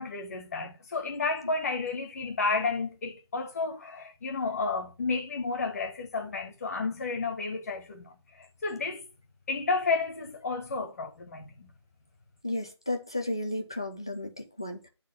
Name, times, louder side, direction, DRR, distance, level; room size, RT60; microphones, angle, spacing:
voice 1, 0.0-9.1 9.5-11.7, left 4 dB, 35° left, 1.5 m, -32 dB
voice 2, 12.4-14.9, left 1 dB, 10° left, 0.3 m, -33 dB
8.7 x 3.6 x 6.0 m
figure-of-eight pair, 165°, 15 cm